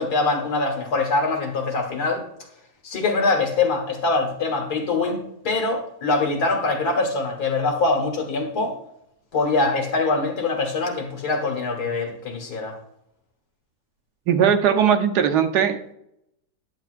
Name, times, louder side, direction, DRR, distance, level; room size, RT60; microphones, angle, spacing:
voice 1, 0.0-2.2 2.8-8.8 9.3-12.8, left 3 dB, 65° left, 2 dB, 1.9 m, -23 dB
voice 2, 14.3-15.9, right 8 dB, 75° right, 6 dB, 1.3 m, -19 dB
10.5 x 7.7 x 2.5 m, 0.77 s
omnidirectional pair, 1.8 m